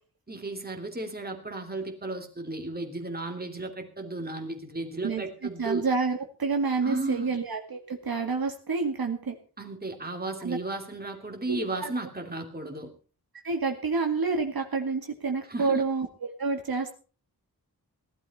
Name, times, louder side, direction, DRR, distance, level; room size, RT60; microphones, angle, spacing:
voice 1, 0.3-5.8 6.8-7.3 9.6-12.9 15.5-15.8, right 2 dB, 25° right, 3 dB, 2.9 m, -34 dB
voice 2, 5.6-9.4 10.4-10.6 11.5-11.9 13.4-16.1 16.4-16.9, right 4 dB, 70° right, 3 dB, 2.3 m, -28 dB
18.0 x 12.0 x 4.3 m, 0.37 s
wide cardioid pair, 105°, 37 cm